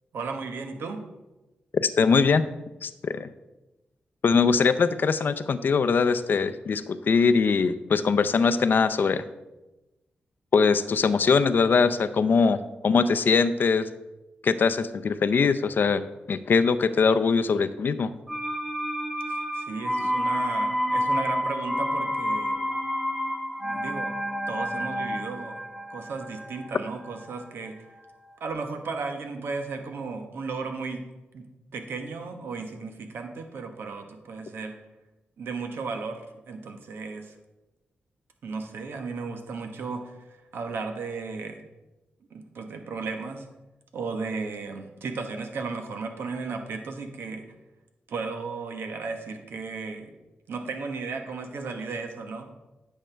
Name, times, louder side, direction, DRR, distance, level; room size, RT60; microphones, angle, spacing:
voice 1, 0.1-1.1 19.3-22.6 23.6-24.1 24.5-25.6 25.9-27.8 28.4-31.0 31.3-34.8 35.4-37.3 38.4-41.6 42.3-43.5 43.9-47.4 48.1-50.1 50.5-52.5, right 4 dB, 80° right, 5 dB, 1.2 m, -35 dB
voice 2, 1.7-2.5 2.8-3.3 4.2-9.2 10.5-13.9 14.4-16.0 16.3-18.1, left 5 dB, 60° left, 12 dB, 0.5 m, -22 dB
sound 1, 18.3-28.0 28.3-28.4, equal, 5° right, 1.4 m, -29 dB
10.0 x 6.6 x 3.4 m, 1.0 s
cardioid pair, 60°, 4 cm